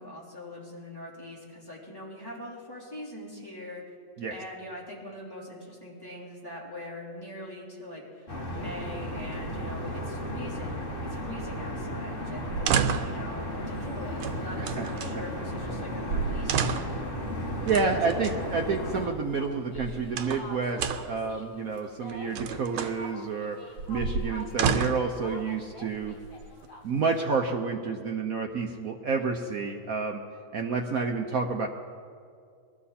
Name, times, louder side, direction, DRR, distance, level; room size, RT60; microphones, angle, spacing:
voice 1, 0.0-3.8 4.3-16.9 17.9-18.5, left 1 dB, 10° left, -7 dB, 3.8 m, -42 dB
sound 1, 8.3-19.1, equal, 30° left, 1.6 m, -34 dB
sound 2, 12.4-13.2 14.2-15.1 15.8-15.9 16.1-17.0 17.7-18.4 19.5-20.5 20.8-21.2 22.1-23.0 23.8-25.1 26.0-26.7, right 6 dB, 85° right, 1.6 m, -30 dB
voice 2, 14.6-14.9 17.7-23.6 23.9-26.2 26.8-30.2 30.5-31.7, right 4 dB, 60° right, 3 dB, 0.9 m, -29 dB
sound 3, 18.8-27.2, equal, 55° left, 2.2 m, -47 dB
21.5 x 13.5 x 4.3 m, 2.3 s
omnidirectional pair, 2.3 m